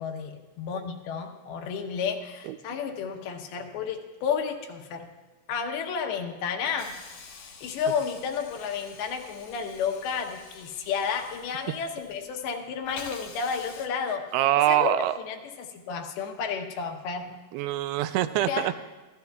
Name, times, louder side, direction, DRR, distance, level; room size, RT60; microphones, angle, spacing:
voice 1, 0.0-5.1 5.5-7.0 7.4-14.3 14.7-17.4 18.4-18.8, left 6 dB, 80° left, 4 dB, 2.9 m, -32 dB
Hiss, 6.8-12.5 12.8-13.9, left 5 dB, 60° left, 1.7 m, -47 dB
voice 2, 14.3-15.1 17.5-18.7, right 13 dB, 90° right, 12 dB, 2.6 m, -24 dB
24.5 x 15.5 x 2.4 m, 1.2 s
omnidirectional pair, 4.5 m